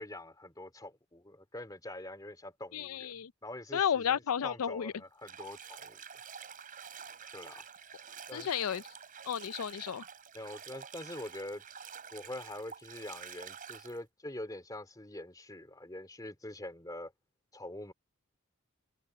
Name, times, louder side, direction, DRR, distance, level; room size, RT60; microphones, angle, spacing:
voice 1, 0.0-3.2 3.4-6.0 7.3-7.6 8.3-8.5 10.3-11.6 12.1-17.1 17.5-17.9, left 1 dB, 15° left, 2.6 m, -44 dB
voice 2, 2.7-3.3 3.7-4.9 8.3-8.8 9.3-10.0, left 8 dB, 80° left, 0.5 m, -32 dB
Bathtub (filling or washing), 5.2-14.0, right 7 dB, 40° right, 3.6 m, -48 dB
head